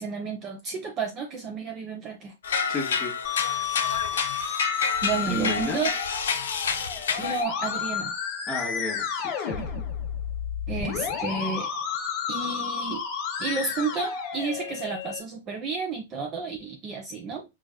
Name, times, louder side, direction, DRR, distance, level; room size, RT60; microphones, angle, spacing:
voice 1, 0.0-2.3 5.0-5.9 7.2-8.1 9.6-9.8 10.7-11.7 12.3-13.0 13.4-17.4, right 4 dB, 30° right, 0.5 m, -31 dB
sound 1, 2.4-7.4, left 5 dB, 90° left, 0.6 m, -29 dB
voice 2, 2.7-3.1 5.3-5.8 8.5-9.6, left 1 dB, 5° left, 1.1 m, -32 dB
Musical instrument, 3.2-15.2, left 7 dB, 40° left, 0.7 m, -31 dB
4.8 x 2.4 x 2.2 m
supercardioid pair, 150°, 0 cm